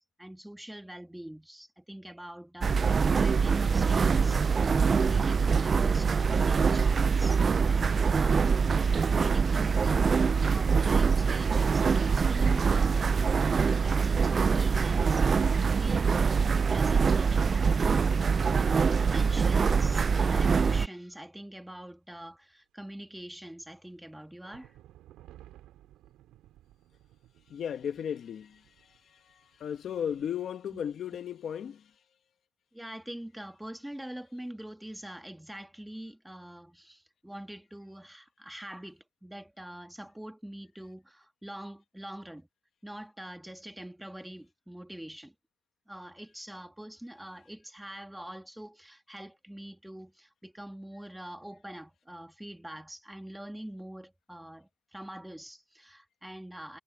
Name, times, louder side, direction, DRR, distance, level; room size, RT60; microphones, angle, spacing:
voice 1, 0.0-8.6 8.9-13.5 13.8-18.1 19.0-24.8 30.7-30.8 32.7-42.5 42.8-45.3 45.9-56.8, right 1 dB, 5° right, 1.9 m, -44 dB
sound 1, 2.6-20.9, right 5 dB, 30° right, 0.3 m, -24 dB
sound 2, 22.9-30.3, right 13 dB, 80° right, 2.9 m, -60 dB
voice 2, 27.5-31.8, left 8 dB, 45° left, 1.3 m, -36 dB
cardioid pair, 150°, 0 cm